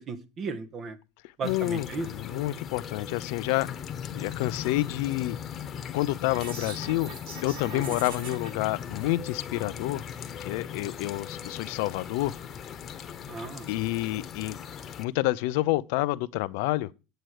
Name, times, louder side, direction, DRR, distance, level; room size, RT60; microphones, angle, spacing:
voice 1, 0.1-1.0 1.4-2.1 7.7-7.9 13.3-13.7, right 4 dB, 40° right, 1.4 m, -35 dB
voice 2, 1.4-3.7 4.1-5.4 5.9-7.1 7.4-10.1 10.4-12.3 13.7-14.6 15.0-16.9, left 18 dB, 70° left, 0.6 m, -28 dB
sound 1, 1.4-15.0, left 8 dB, 35° left, 1.2 m, -39 dB
sound 2, 6.3-8.5, right 3 dB, 80° right, 6.5 m, -41 dB
9.2 x 7.7 x 4.8 m
supercardioid pair, 105°, 0 cm